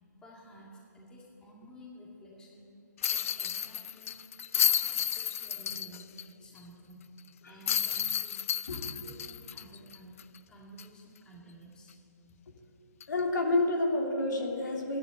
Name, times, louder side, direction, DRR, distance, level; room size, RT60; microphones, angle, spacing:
voice 1, 0.2-2.7 3.1-4.2 4.5-7.1 7.5-8.3 8.7-10.2 10.5-11.9 12.3-12.4, right 1 dB, 10° left, -4 dB, 2.1 m, -52 dB
sound 1, 3.0-6.2 6.6-6.7 7.7-10.4 10.8-10.9 13.0-13.2, left 9 dB, 50° left, 0.4 m, -31 dB
voice 2, 13.1-15.0, left 2 dB, 80° left, 0 dB, 2.9 m, -29 dB
13.5 x 10.5 x 8.9 m, 2.7 s
hypercardioid pair, 155°, 10 cm